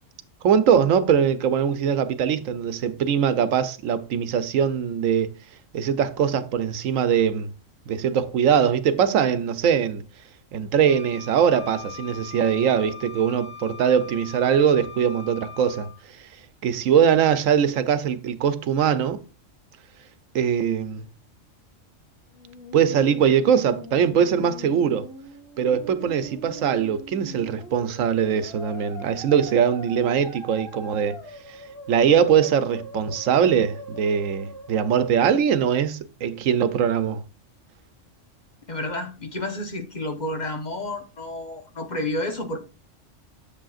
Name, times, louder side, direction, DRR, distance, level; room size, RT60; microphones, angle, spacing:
voice 1, 0.4-5.3 5.7-7.5 7.9-10.0 10.5-15.9 16.6-19.2 20.3-21.1 22.7-25.1 25.6-31.2 31.5-31.6 31.9-37.2, right 8 dB, 85° right, 1.1 m, -21 dB
Wind instrument woodwind instrument, 10.8-16.0, left 6 dB, 35° right, 1.2 m, -41 dB
Musical instrument, 22.3-35.3, equal, 75° left, 3.7 m, -41 dB
voice 2, 38.7-42.6, left 1 dB, 35° left, 1.1 m, -30 dB
10.0 x 6.9 x 2.4 m
omnidirectional pair, 1.3 m